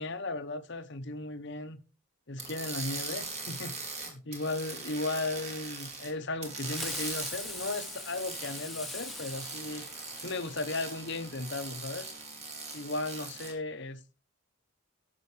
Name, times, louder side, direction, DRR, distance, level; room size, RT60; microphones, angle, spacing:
voice 1, 0.0-1.8 2.3-3.8 4.0-9.9 10.2-12.1 12.7-14.1, left 2 dB, 50° left, 1.0 m, -36 dB
sound 1, 2.4-6.1 6.4-13.5, right 3 dB, 30° right, 2.4 m, -41 dB
Fireworks, 6.6-10.5, left 2 dB, ahead, 1.2 m, -41 dB
17.5 x 6.0 x 3.3 m
head